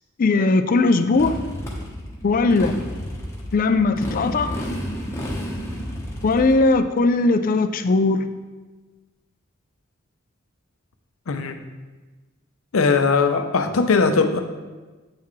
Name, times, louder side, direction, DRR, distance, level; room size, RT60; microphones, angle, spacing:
voice 1, 0.2-1.4 2.2-2.8 3.5-4.6 6.2-8.3, left 3 dB, 40° left, 10 dB, 0.4 m, -19 dB
Motorcycle, 1.1-6.5, equal, 15° left, 1.2 m, -31 dB
voice 2, 11.3-11.6 12.7-14.4, left 4 dB, 90° left, 7 dB, 0.6 m, -19 dB
8.5 x 5.8 x 3.2 m, 1.3 s
head